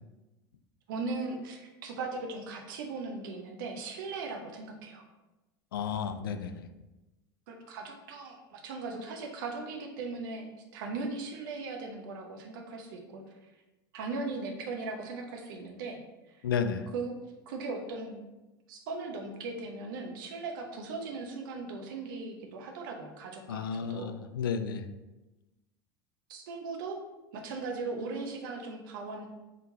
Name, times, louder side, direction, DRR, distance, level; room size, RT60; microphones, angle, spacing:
voice 1, 0.9-5.0 7.5-13.2 13.9-16.0 16.3-16.4 16.9-17.2 17.5-18.2 18.7-24.1 26.3-27.0 27.3-29.3, right 3 dB, 65° right, 3 dB, 0.8 m, -38 dB
voice 2, 5.7-6.7 16.4-16.8 23.5-24.8, left 6 dB, 75° left, 10 dB, 0.4 m, -32 dB
4.9 x 3.7 x 2.7 m, 1.1 s
figure-of-eight pair, 75°, 12 cm